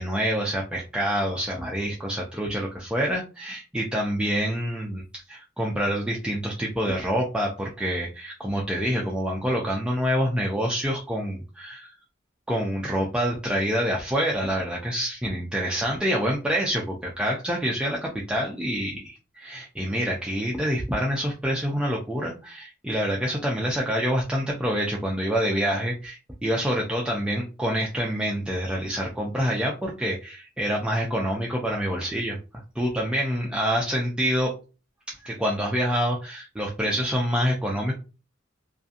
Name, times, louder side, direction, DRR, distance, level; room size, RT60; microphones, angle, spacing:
voice 1, 0.0-11.9 12.5-32.4 32.8-34.5 35.1-37.9, equal, 5° right, -3 dB, 0.3 m, -27 dB
2.6 x 2.5 x 2.4 m, 0.33 s
head